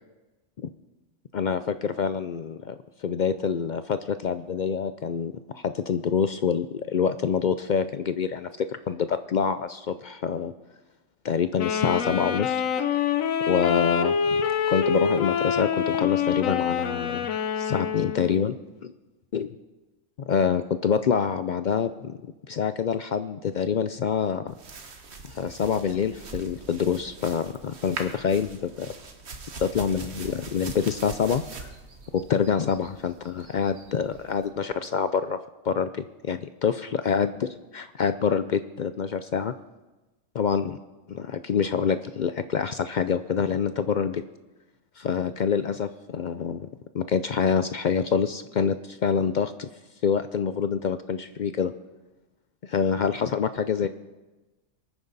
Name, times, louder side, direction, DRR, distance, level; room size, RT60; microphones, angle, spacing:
voice 1, 1.3-10.5 11.2-12.6 13.4-14.4 14.7-17.3 17.6-18.5 18.8-18.9 19.3-19.5 20.2-22.2 22.5-24.5 25.3-28.9 29.6-31.7 32.1-35.4 35.6-39.5 40.3-40.8 41.1-44.2 45.0-46.7 46.9-49.7 50.0-51.7 52.6-53.9, left 7 dB, 70° left, 11 dB, 0.4 m, -26 dB
Wind instrument woodwind instrument, 11.6-18.5, left 7 dB, 90° left, 1.2 m, -26 dB
sound 1, 24.5-34.5, right 4 dB, 55° right, 1.5 m, -42 dB
23.0 x 9.6 x 4.0 m, 1.1 s
omnidirectional pair, 1.3 m